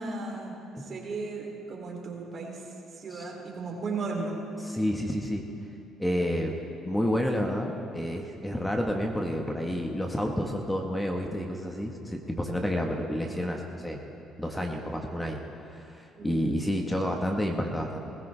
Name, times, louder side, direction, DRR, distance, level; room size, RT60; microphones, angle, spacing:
voice 1, 0.0-0.6 0.9-2.6 3.0-4.4 16.2-16.4, right 3 dB, 45° right, 0 dB, 3.2 m, -35 dB
voice 2, 4.6-5.4 6.0-6.5 6.8-14.0 14.4-18.0, equal, 10° left, 2 dB, 1.4 m, -30 dB
19.5 x 16.0 x 3.4 m, 2.9 s
supercardioid pair, 75°, 0 cm